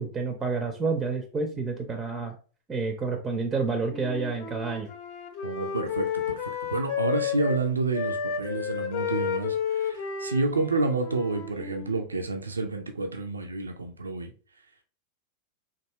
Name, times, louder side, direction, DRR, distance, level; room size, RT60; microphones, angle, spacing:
voice 1, 0.0-2.3 2.7-4.9, right 4 dB, 20° right, 0.5 m, -29 dB
Wind instrument woodwind instrument, 3.9-7.6 7.9-12.0, left 7 dB, 45° left, 0.6 m, -32 dB
voice 2, 5.4-14.3, right 3 dB, 75° right, 0.4 m, -29 dB
3.5 x 2.6 x 3.1 m
figure-of-eight pair, 90°, 0 cm